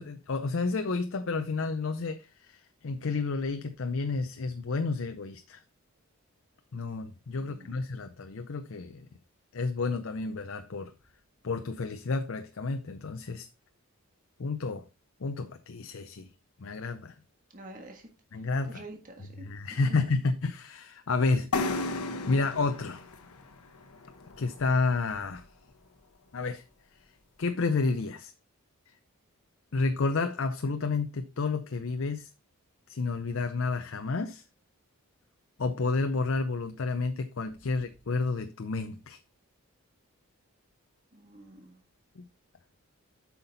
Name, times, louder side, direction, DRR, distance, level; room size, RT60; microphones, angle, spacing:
voice 1, 0.0-5.6 6.7-9.1 9.5-10.9 11.4-13.5 14.4-14.8 15.2-16.3 16.6-17.1 18.3-18.8 19.2-21.9 22.3-23.0 24.4-25.5 26.3-26.6 27.4-28.3 29.7-32.3 32.9-34.4 35.6-39.2 42.2-42.3, left 3 dB, 60° left, 0.6 m, -30 dB
voice 2, 7.4-7.7 17.5-18.1 18.7-19.4 41.1-41.8, right 1 dB, 35° right, 1.6 m, -47 dB
sound 1, 21.5-25.2, left 3 dB, 90° left, 1.0 m, -35 dB
8.1 x 5.8 x 4.0 m
head